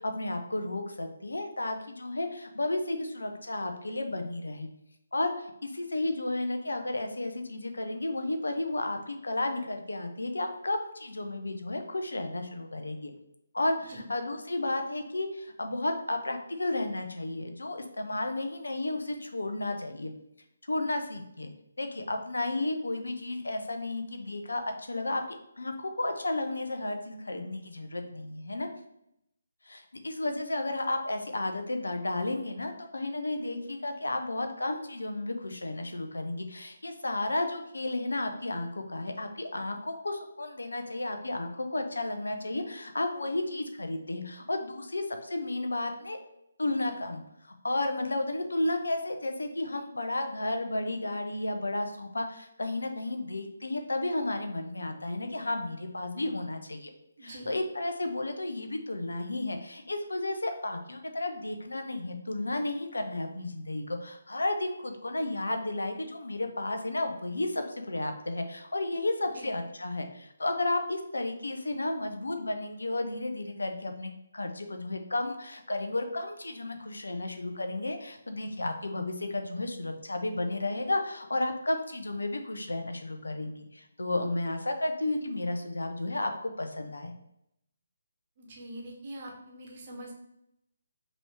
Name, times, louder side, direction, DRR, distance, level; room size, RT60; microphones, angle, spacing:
voice 1, 0.0-4.7 5.1-13.1 13.5-20.1 20.7-21.5 21.8-28.7 29.7-46.2 46.6-56.9 57.2-87.1, left 2 dB, 65° left, 5 dB, 0.6 m, -33 dB
voice 2, 57.2-57.5 69.3-69.5 88.4-90.1, right 1 dB, 35° right, 0 dB, 1.0 m, -43 dB
5.3 x 2.9 x 3.3 m, 0.79 s
figure-of-eight pair, 145°, 0 cm